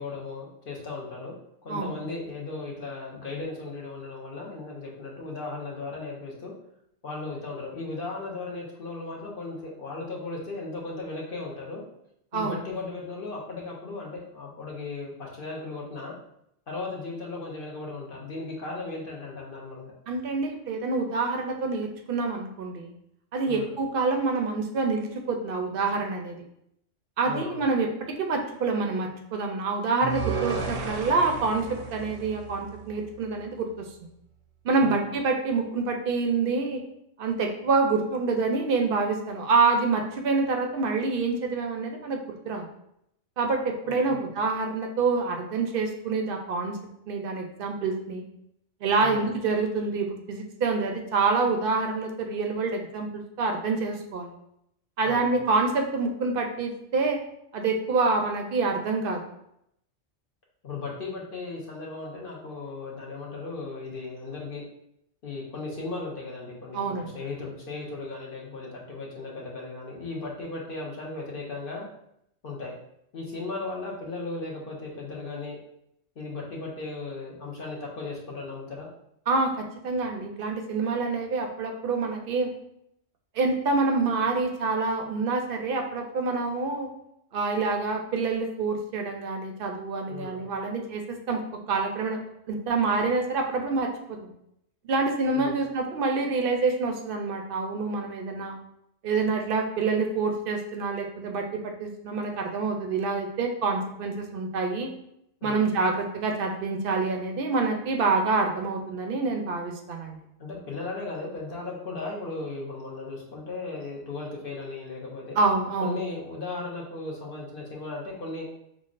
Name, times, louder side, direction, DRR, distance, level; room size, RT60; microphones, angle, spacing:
voice 1, 0.0-1.3 1.6-6.5 7.0-11.8 12.3-16.1 16.7-19.9 23.4-23.7 27.2-27.6 34.8-35.0 43.8-44.3 49.0-49.3 55.0-55.4 60.6-64.6 65.2-71.9 72.4-72.7 73.1-75.6 76.2-78.9 90.1-90.4 95.3-95.6 105.4-105.7 110.4-115.4 115.8-118.5, left 3 dB, 50° left, -2 dB, 0.9 m, -36 dB
voice 2, 20.1-22.9 23.3-26.4 27.2-27.9 28.2-33.8 34.6-36.8 37.2-42.6 43.4-46.8 47.1-48.2 48.8-53.1 53.4-54.3 55.0-57.2 57.5-59.2 66.7-67.1 79.3-82.5 83.3-86.9 87.3-92.2 92.5-94.3 94.9-98.5 99.0-104.9 105.4-110.2 115.4-116.0, right 4 dB, 60° right, 3 dB, 0.6 m, -27 dB
sound 1, 30.0-33.2, right 4 dB, 85° right, 0.9 m, -33 dB
6.0 x 2.0 x 2.4 m, 0.76 s
omnidirectional pair, 1.2 m